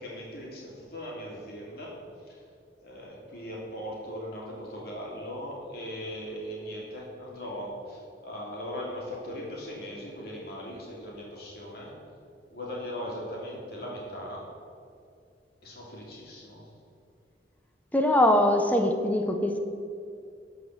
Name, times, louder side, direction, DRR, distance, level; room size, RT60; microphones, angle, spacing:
voice 1, 0.0-2.0 2.3-2.4 2.8-11.9 12.5-14.4 15.6-16.6, equal, 60° left, -3 dB, 2.9 m, -39 dB
voice 2, 17.9-19.6, left 1 dB, 10° left, 5 dB, 0.7 m, -22 dB
12.0 x 5.0 x 7.9 m, 2.4 s
head